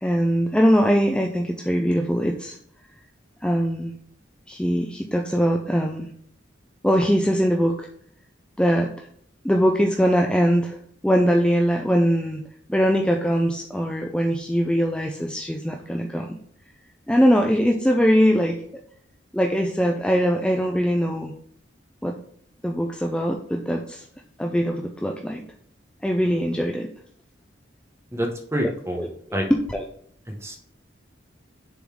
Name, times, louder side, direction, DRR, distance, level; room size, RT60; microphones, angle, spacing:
voice 1, 0.0-2.6 3.4-4.0 4.5-6.1 6.8-7.9 8.6-9.1 9.4-10.8 11.0-12.4 12.7-16.3 17.1-18.6 19.3-21.3 22.0-22.1 22.6-24.0 24.4-25.4 26.0-26.9 29.0-29.8, equal, 5° left, 2 dB, 0.4 m, -21 dB
voice 2, 28.1-29.0 29.3-29.4 30.4-30.6, equal, 15° right, 1 dB, 1.0 m, -27 dB
6.9 x 3.9 x 4.8 m, 0.64 s
head